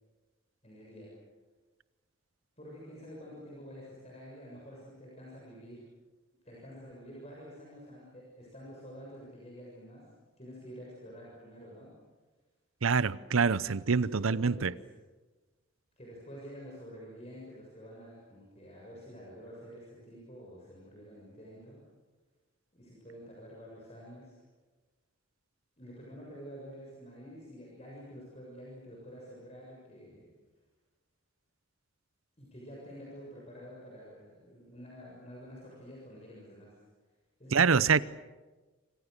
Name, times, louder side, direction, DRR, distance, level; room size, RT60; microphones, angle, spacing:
voice 1, 0.6-1.1 2.6-5.8 6.4-10.0 10.4-11.9 14.0-14.9 16.0-21.8 22.7-24.4 25.8-30.3 32.4-36.8 37.4-38.0, equal, 30° left, 7.0 m, -49 dB
voice 2, 12.8-14.7 37.5-38.0, right 5 dB, 80° right, 0.7 m, -25 dB
28.5 x 26.5 x 6.7 m
head